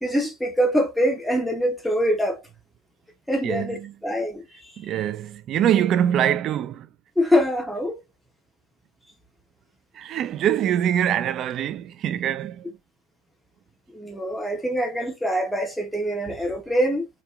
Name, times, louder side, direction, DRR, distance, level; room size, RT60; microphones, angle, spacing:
voice 1, 0.0-2.4 3.3-4.7 7.2-8.0 13.9-17.1, equal, 5° left, 0.7 m, -24 dB
voice 2, 3.4-3.9 4.8-6.9 9.9-12.7, right 10 dB, 45° right, 0.3 m, -24 dB
2.9 x 2.2 x 2.3 m
hypercardioid pair, 90°, 0 cm